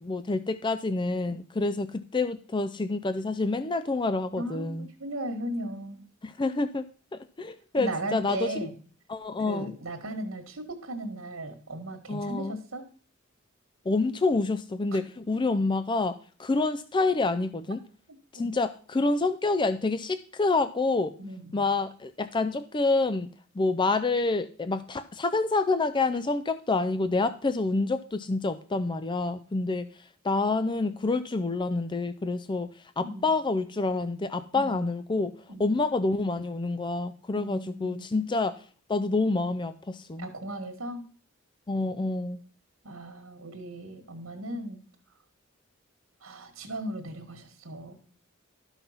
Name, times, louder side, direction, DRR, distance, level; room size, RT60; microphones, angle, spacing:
voice 1, 0.0-4.9 6.2-6.8 7.4-8.4 9.1-9.7 12.1-12.6 13.9-16.1 16.4-17.8 18.3-21.1 21.5-23.3 23.6-29.9 30.2-32.7 33.0-35.3 35.6-38.5 38.9-40.3 41.7-42.4, left 3 dB, 25° left, 11 dB, 0.5 m, -27 dB
voice 2, 4.4-6.0 7.8-8.8 9.5-12.9 14.9-15.0 18.4-18.5 21.2-21.6 33.0-33.3 34.5-34.8 35.5-35.8 37.3-38.1 40.2-41.1 42.8-44.8 46.2-48.0, right 1 dB, 80° right, 2 dB, 1.8 m, -37 dB
12.5 x 5.7 x 5.7 m, 0.42 s
head